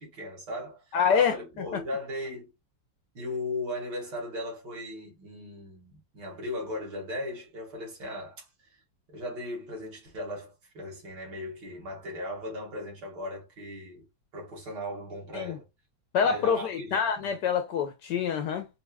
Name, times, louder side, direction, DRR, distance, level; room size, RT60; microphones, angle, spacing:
voice 1, 0.0-2.5 3.1-8.8 9.1-14.1 14.3-15.6 16.2-17.4, left 1 dB, 60° right, 2.3 m, -37 dB
voice 2, 0.9-1.8 15.3-15.6 16.1-18.7, left 7 dB, 75° left, 1.0 m, -26 dB
5.2 x 2.5 x 2.2 m
omnidirectional pair, 2.2 m